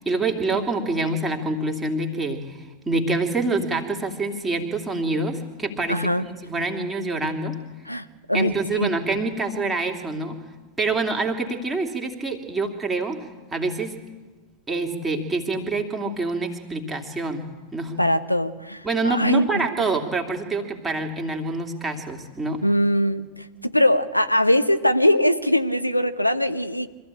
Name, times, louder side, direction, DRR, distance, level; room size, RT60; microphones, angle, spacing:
voice 1, 0.0-7.6 8.3-10.4 10.8-13.2 13.5-13.9 14.7-17.4 17.7-17.9 18.8-22.6, right 3 dB, 10° right, 2 dB, 3.0 m, -26 dB
voice 2, 5.9-6.3 7.9-8.9 18.0-19.4 22.6-26.9, equal, 90° left, 10 dB, 1.0 m, -21 dB
25.0 x 15.0 x 8.8 m, 1.3 s
figure-of-eight pair, 90°, 0 cm